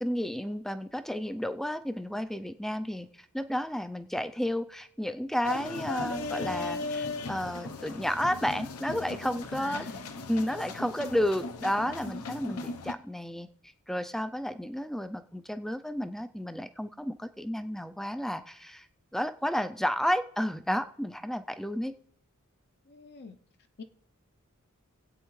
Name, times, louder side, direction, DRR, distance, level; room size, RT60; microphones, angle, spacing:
voice 1, 0.0-3.1 3.3-9.9 10.3-13.5 13.9-18.9 19.1-21.9, equal, ahead, 10 dB, 0.3 m, -32 dB
sound 1, 5.4-12.9, left 3 dB, 80° left, 0.8 m, -37 dB
voice 2, 9.6-10.1 22.9-23.4 23.8-23.9, left 4 dB, 50° left, 7 dB, 0.6 m, -44 dB
23.5 x 8.3 x 3.1 m, 0.71 s
head